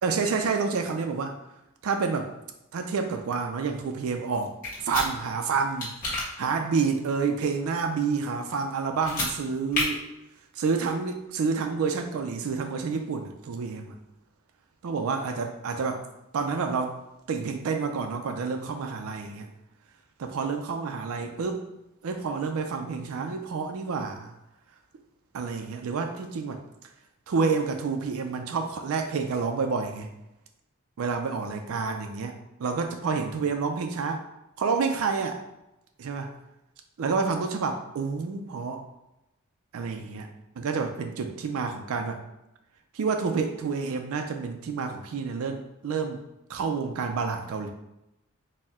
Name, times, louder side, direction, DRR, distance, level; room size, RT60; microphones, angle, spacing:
voice 1, 0.0-1.4 1.8-2.3 2.7-4.5 4.8-5.9 6.4-10.1 10.6-13.9 14.8-16.0 16.3-17.0 17.3-19.5 20.2-21.7 22.0-24.3 25.3-26.6 27.3-30.1 31.0-34.2 34.6-35.4 36.0-36.3 37.0-38.8 39.7-40.3 40.6-42.2 42.9-46.2 46.5-47.7, right 5 dB, 75° right, 5 dB, 0.4 m, -29 dB
sound 1, 4.6-5.1 5.8-6.2 8.9-9.3 9.7-9.8, left 2 dB, 40° left, 1.4 m, -29 dB
4.3 x 2.1 x 3.5 m, 0.90 s
head